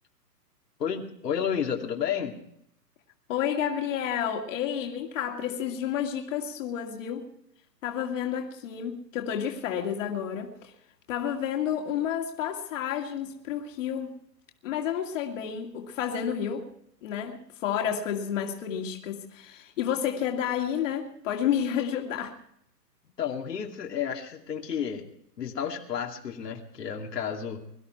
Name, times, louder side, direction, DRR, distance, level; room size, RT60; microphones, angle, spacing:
voice 1, 0.8-2.4 23.2-25.0 25.4-27.6, left 8 dB, 75° left, 2.6 m, -31 dB
voice 2, 3.3-7.3 7.8-10.7 11.1-14.1 14.6-16.7 17.0-22.3, left 9 dB, 50° left, 2.4 m, -30 dB
23.0 x 12.5 x 4.5 m
hypercardioid pair, 140°, 49 cm